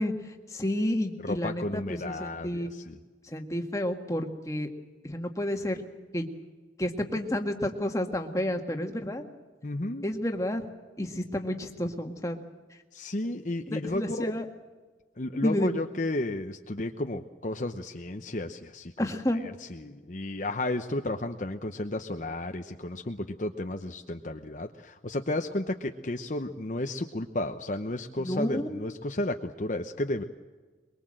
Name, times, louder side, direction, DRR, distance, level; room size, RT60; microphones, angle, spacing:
voice 1, 0.0-2.7 3.2-4.7 5.0-5.8 6.1-6.3 6.8-9.2 10.0-10.6 11.0-12.4 13.7-14.5 15.4-15.7 19.0-19.4 28.2-28.8, left 1 dB, 20° left, 3 dB, 1.8 m, -30 dB
voice 2, 1.2-2.9 9.6-10.1 12.9-14.3 15.2-18.9 19.8-30.2, left 1 dB, 45° left, 5 dB, 0.9 m, -33 dB
23.0 x 22.5 x 7.7 m, 1.3 s
head